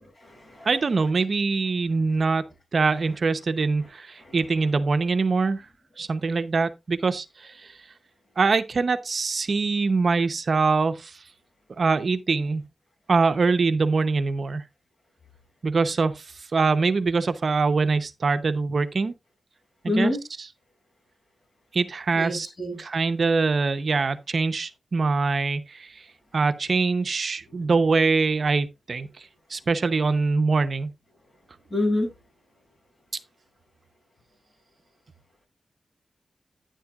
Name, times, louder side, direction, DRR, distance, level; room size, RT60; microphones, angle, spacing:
voice 1, 0.6-2.4 2.7-5.6 6.0-7.7 8.4-11.2 11.8-12.6 13.1-14.6 15.6-19.1 19.8-20.5 21.7-22.5 22.8-26.0 26.3-30.9, right 4 dB, 55° right, 0.7 m, -24 dB
voice 2, 19.9-20.2 22.2-22.8 31.7-32.1, left 1 dB, 45° left, 6.7 m, -26 dB
10.0 x 9.7 x 2.4 m
wide cardioid pair, 105°, 0 cm